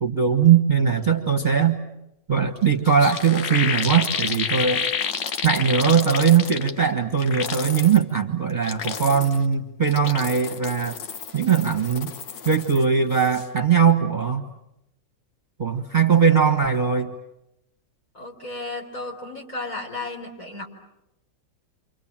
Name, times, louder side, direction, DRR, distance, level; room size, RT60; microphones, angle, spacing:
voice 1, 0.0-1.8 2.3-4.9 5.4-11.0 11.3-12.1 12.4-14.4 15.6-17.1, right 7 dB, 30° right, 7 dB, 1.3 m, -20 dB
sound 1, 2.6-2.7 2.8-6.9 7.2-8.0 8.5-9.4 9.8-12.8 13.1-13.5, left 7 dB, 85° left, 1.8 m, -30 dB
voice 2, 18.1-20.7, left 2 dB, 50° left, 1 dB, 4.7 m, -34 dB
29.0 x 26.0 x 7.4 m, 0.88 s
omnidirectional pair, 1.9 m